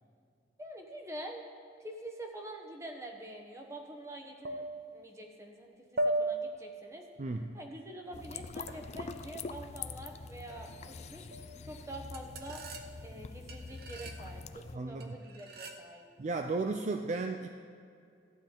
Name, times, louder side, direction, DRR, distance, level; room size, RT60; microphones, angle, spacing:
voice 1, 0.6-1.4 1.8-4.6 4.9-7.1 7.5-11.3 11.7-12.6 13.0-16.1, right 1 dB, 15° right, 3 dB, 1.0 m, -46 dB
sound 1, 3.3-3.4 4.4-5.1 6.0-6.8 8.7-8.9 10.5-11.0 11.3-11.6 12.1-13.2 13.5-14.2 15.0-15.9, right 1 dB, 60° right, 0.8 m, -37 dB
voice 2, 7.2-7.6 14.7-15.2 16.2-17.5, right 3 dB, 40° right, 5 dB, 0.4 m, -34 dB
sound 2, 8.1-14.8, left 4 dB, 40° left, 0.4 m, -45 dB
14.0 x 8.9 x 3.8 m, 2.4 s
head